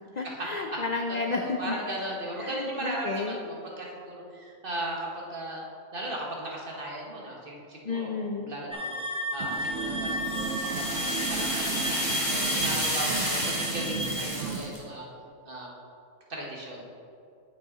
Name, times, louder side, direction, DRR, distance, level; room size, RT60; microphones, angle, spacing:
voice 1, 0.1-1.7 2.4-3.4 7.8-8.5, left 3 dB, 60° left, 3 dB, 0.4 m, -32 dB
voice 2, 1.3-5.6 5.9-8.1 8.4-9.0 9.3-12.0 12.3-15.0 15.4-15.7 16.3-16.9, right 1 dB, 40° right, -2 dB, 1.6 m, -36 dB
sound 1, 8.7-14.2, left 1 dB, 5° right, 0.5 m, -34 dB
sound 2, 9.4-14.7, right 6 dB, 65° right, 0.9 m, -35 dB
sound 3, 9.6-14.8, equal, 20° left, 2.1 m, -31 dB
8.8 x 7.1 x 3.9 m, 2.5 s
omnidirectional pair, 1.4 m